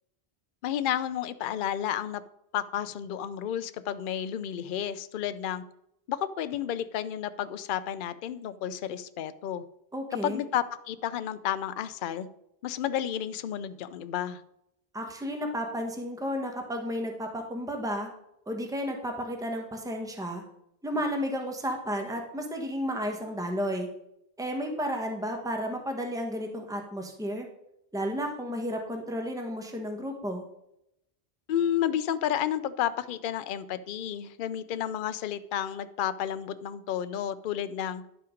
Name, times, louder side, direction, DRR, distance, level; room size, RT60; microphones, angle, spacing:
voice 1, 0.6-2.2 2.5-5.6 6.1-9.6 10.2-12.3 12.6-14.4 31.5-38.1, left 10 dB, 60° left, 13 dB, 0.7 m, -31 dB
voice 2, 9.9-10.4 14.9-18.1 18.5-20.4 20.8-23.9 24.4-27.5 27.9-30.5, equal, 5° right, 3 dB, 1.1 m, -32 dB
10.5 x 5.6 x 5.0 m, 0.81 s
omnidirectional pair, 1.1 m